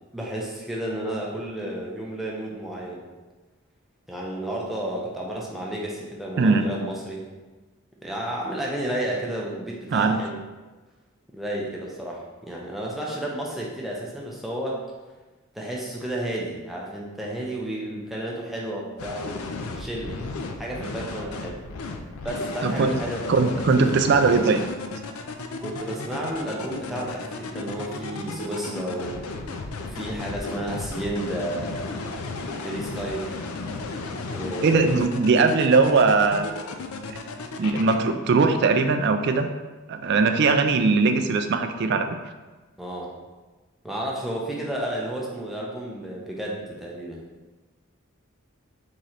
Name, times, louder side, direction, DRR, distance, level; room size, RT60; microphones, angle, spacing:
voice 1, 0.1-3.0 4.1-7.3 8.0-10.4 11.3-14.8 15.5-20.3 20.6-21.6 22.2-24.0 25.6-29.2 29.8-32.0 32.6-33.4 34.3-34.9 42.8-43.1 43.8-47.2, right 1 dB, ahead, -4 dB, 0.6 m, -32 dB
voice 2, 6.4-6.7 9.9-10.2 22.6-22.9 23.3-24.6 34.6-36.5 37.6-39.5 39.9-42.1, right 4 dB, 50° right, 7 dB, 0.3 m, -20 dB
sound 1, 19.0-37.9, left 3 dB, 80° left, 0.4 m, -34 dB
3.8 x 3.1 x 4.2 m, 1.2 s
head